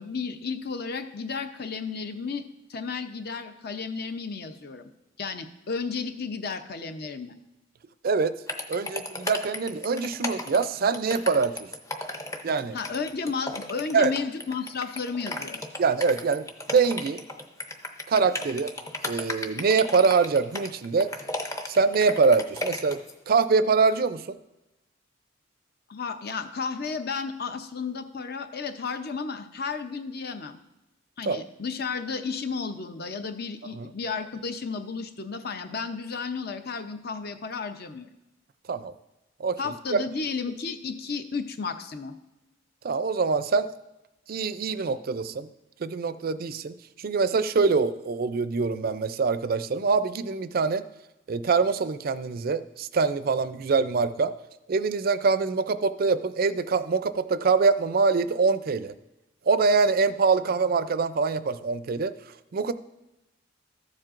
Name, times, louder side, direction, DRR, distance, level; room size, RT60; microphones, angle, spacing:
voice 1, 0.0-4.9 5.2-7.4 12.7-15.7 25.9-30.6 31.2-38.1 39.6-42.2, left 5 dB, 55° left, 9 dB, 0.6 m, -33 dB
sound 1, 8.5-23.1, left 2 dB, 15° left, 0.6 m, -34 dB
voice 2, 8.7-11.7 12.4-12.8 13.9-14.1 15.8-17.2 18.1-18.7 19.0-21.1 21.7-23.0 23.3-24.4 31.3-31.4 33.8-33.9 38.7-38.9 39.4-40.0 42.8-43.7 44.3-45.5 45.8-50.8 51.3-54.3 54.7-58.9 59.5-62.1 62.5-62.7, right 4 dB, 50° right, 13 dB, 0.4 m, -24 dB
14.0 x 7.4 x 2.5 m, 0.96 s
head